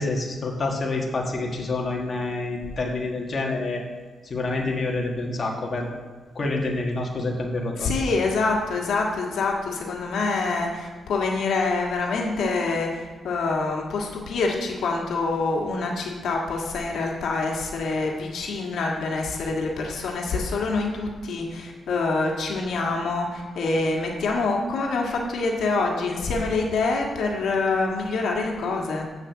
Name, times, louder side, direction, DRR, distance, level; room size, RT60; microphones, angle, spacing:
voice 1, 0.0-3.8 4.2-5.9 6.3-7.9, left 2 dB, 40° left, -1 dB, 1.6 m, -27 dB
voice 2, 7.8-29.1, left 3 dB, 80° left, 0 dB, 1.6 m, -26 dB
7.4 x 6.6 x 7.5 m, 1.4 s
cardioid pair, 120°, 0 cm